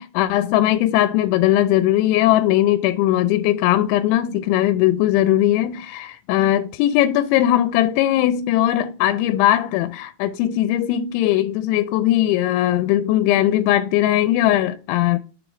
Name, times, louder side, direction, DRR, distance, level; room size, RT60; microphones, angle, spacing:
voice 1, 0.0-15.2, left 13 dB, 90° left, 2.9 m, -19 dB
7.2 x 3.8 x 4.7 m
omnidirectional pair, 5.2 m